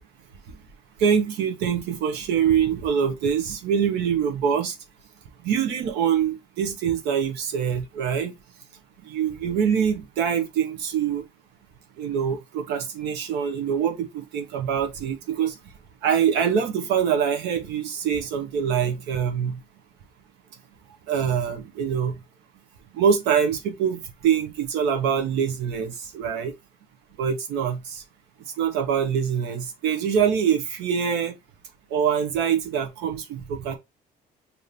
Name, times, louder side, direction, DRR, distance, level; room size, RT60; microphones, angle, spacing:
voice 1, 1.0-4.7 5.4-8.3 9.0-11.2 12.0-15.6 16.0-19.6 21.1-22.2 22.9-26.5 27.2-28.0 28.6-31.3 31.9-33.8, right 7 dB, 85° right, 0.9 m, -24 dB
5.0 x 2.8 x 2.8 m
cardioid pair, 110°, 17 cm